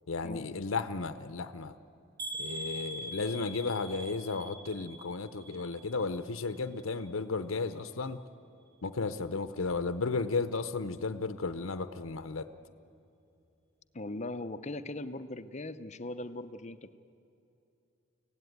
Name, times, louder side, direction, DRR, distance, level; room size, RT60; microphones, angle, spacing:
voice 1, 0.1-1.8 2.4-8.2 8.8-12.5, left 4 dB, 80° left, 11 dB, 0.7 m, -34 dB
sound 1, 2.2-6.2 6.5-7.1 7.5-7.7 8.0-8.1, right 1 dB, 45° right, 5.9 m, -43 dB
voice 2, 13.9-17.0, left 2 dB, 35° left, 11 dB, 0.7 m, -39 dB
24.5 x 17.0 x 9.3 m, 2.7 s
head